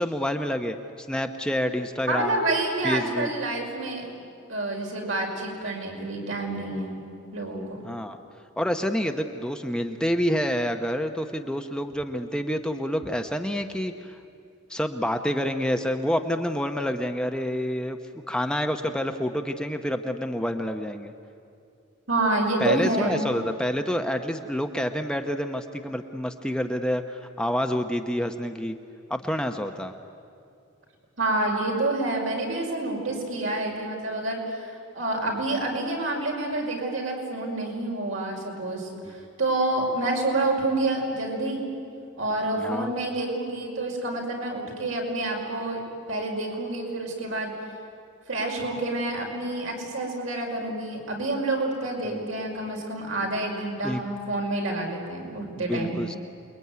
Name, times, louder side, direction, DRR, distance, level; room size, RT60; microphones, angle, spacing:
voice 1, 0.0-2.4 2.8-3.3 7.8-8.2 8.6-14.2 14.7-18.0 18.3-21.1 22.6-28.8 29.1-29.9 39.1-39.2 42.6-42.9 52.1-52.3 53.8-54.0 55.6-56.2, equal, 5° left, 5 dB, 0.8 m, -28 dB
voice 2, 2.1-4.1 4.5-7.1 7.3-7.8 22.1-23.2 31.2-34.6 34.9-41.6 42.2-45.8 46.1-47.5 48.3-56.0, right 2 dB, 70° right, 0 dB, 5.6 m, -28 dB
28.5 x 22.0 x 9.5 m, 2.5 s
head